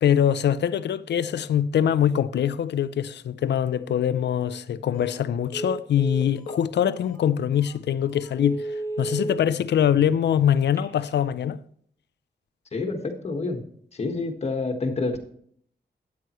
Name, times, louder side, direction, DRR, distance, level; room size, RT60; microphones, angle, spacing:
voice 1, 0.0-11.6, left 9 dB, 80° left, 0.5 m, -23 dB
Telephone, 4.9-5.2 5.5-6.6 7.1-7.2 7.7-7.8 8.2-9.3 10.6-11.2, right 2 dB, 15° left, 1.5 m, -33 dB
voice 2, 12.7-13.6 13.9-15.2, left 3 dB, 35° left, 1.5 m, -28 dB
12.5 x 9.6 x 3.1 m
wide cardioid pair, 180°, 18 cm